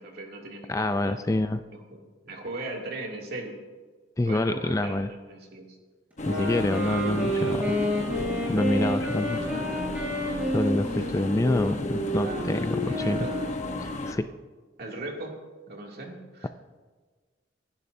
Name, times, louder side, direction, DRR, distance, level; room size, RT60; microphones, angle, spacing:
voice 1, 0.0-1.2 1.7-1.8 2.2-3.6 4.2-5.8 9.4-10.0 10.9-11.0 12.1-13.4 14.8-15.4 15.7-16.5, right 2 dB, 55° right, -1 dB, 2.6 m, -38 dB
voice 2, 0.7-1.6 4.2-5.1 6.3-7.8 8.5-9.4 10.5-13.3 13.8-14.3 16.4-16.5, left 1 dB, 15° left, 10 dB, 0.4 m, -27 dB
sound 1, 6.2-14.1, left 1 dB, 40° left, 1.0 m, -33 dB
sound 2, 6.2-13.8, equal, 10° right, 4.9 m, -30 dB
25.5 x 11.0 x 2.7 m, 1.4 s
head